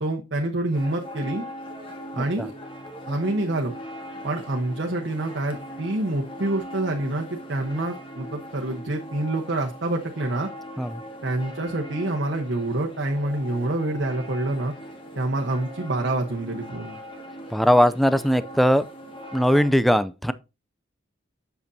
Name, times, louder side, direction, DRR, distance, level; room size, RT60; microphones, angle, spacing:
voice 1, 0.0-1.4 2.1-2.5 3.1-3.7 4.2-10.5 11.2-14.7 15.2-17.0, right 2 dB, 65° right, 1.1 m, -27 dB
sound 1, 0.7-19.7, equal, 30° left, 1.8 m, -40 dB
voice 2, 17.5-18.9 19.3-20.3, equal, ahead, 0.4 m, -19 dB
7.9 x 7.0 x 2.7 m
head